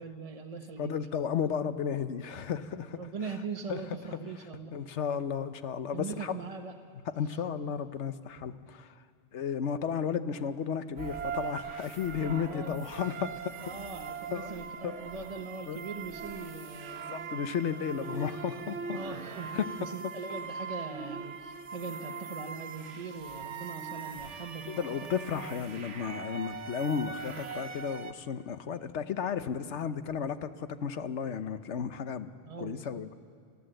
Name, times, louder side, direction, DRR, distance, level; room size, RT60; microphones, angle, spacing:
voice 1, 0.0-1.0 3.0-4.8 5.9-6.8 12.4-12.8 13.1-13.2 13.6-17.6 18.8-25.0 32.4-33.1, right 4 dB, 35° right, 4 dB, 1.0 m, -41 dB
voice 2, 0.8-3.0 3.7-3.8 4.7-6.4 7.2-8.9 9.3-13.5 14.3-14.9 15.7-15.8 17.1-19.0 19.5-19.7 24.8-32.3 32.6-33.1, left 7 dB, 80° left, 11 dB, 1.2 m, -33 dB
sound 1, 11.0-28.1, right 5 dB, 80° right, 1.3 m, -41 dB
29.0 x 14.0 x 7.8 m, 2.2 s
omnidirectional pair, 1.2 m